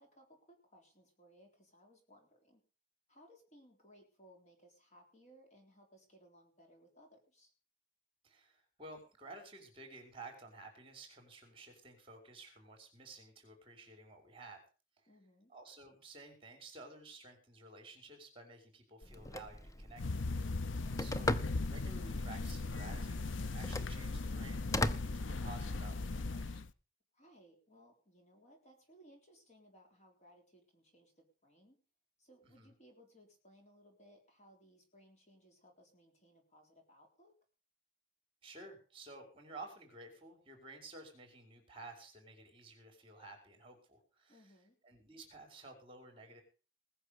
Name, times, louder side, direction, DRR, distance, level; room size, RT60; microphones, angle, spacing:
voice 1, 0.0-2.6 3.1-7.5 15.1-15.5 27.1-31.8 32.2-37.3 44.3-44.8, equal, 35° left, 3 dB, 3.8 m, -63 dB
voice 2, 8.2-14.6 15.0-15.1 15.5-20.2 21.0-21.3 21.7-26.6 32.5-32.7 38.4-44.5 44.8-46.4, right 2 dB, 25° right, 4 dB, 5.1 m, -53 dB
Telephone, 19.0-26.0, left 1 dB, 15° left, 0.7 m, -40 dB
sound 1, 20.0-26.7, left 3 dB, 65° left, 0.7 m, -38 dB
20.5 x 6.9 x 6.8 m, 0.36 s
head